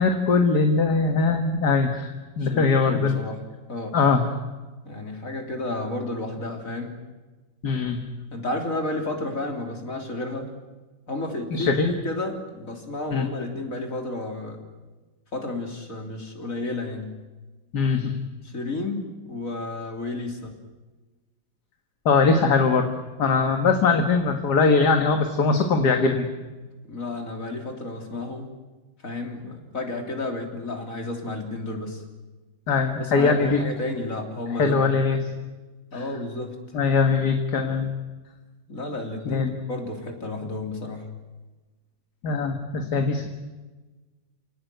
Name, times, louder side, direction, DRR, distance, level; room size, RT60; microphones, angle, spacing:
voice 1, 0.0-2.1 2.4-3.2 3.9-4.3 7.6-8.0 11.5-11.9 13.1-13.3 17.7-18.1 22.1-22.9 23.2-26.3 32.7-33.6 34.6-35.2 35.9-36.0 36.7-37.9 39.3-39.5 42.2-43.3, left 4 dB, 60° left, 5 dB, 2.2 m, -21 dB
voice 2, 2.4-3.4 3.7-4.0 4.8-7.0 8.3-10.5 11.1-14.6 15.3-17.1 18.4-20.5 26.9-28.5 29.0-32.0 33.0-34.9 35.9-36.6 37.0-37.1 38.7-41.1 42.8-42.9, left 2 dB, 40° left, 3 dB, 3.9 m, -32 dB
29.0 x 18.5 x 9.3 m, 1.2 s
omnidirectional pair, 2.1 m